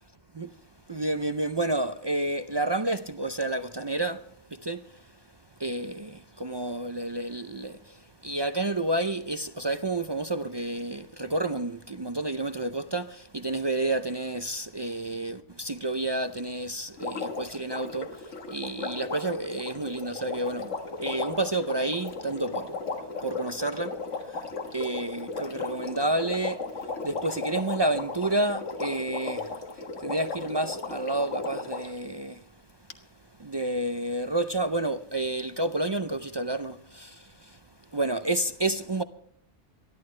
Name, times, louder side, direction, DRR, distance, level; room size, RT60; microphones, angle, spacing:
voice 1, 0.9-4.2 4.5-4.8 5.6-20.7 21.0-22.7 23.2-24.0 24.3-24.4 24.7-26.6 27.0-29.5 30.0-32.4 33.4-37.6 37.9-39.0, right 2 dB, 40° right, 0.3 m, -30 dB
Water, 17.0-32.0 32.9-33.0, left 3 dB, 85° left, 1.8 m, -36 dB
26.5 x 11.5 x 3.2 m
omnidirectional pair, 1.2 m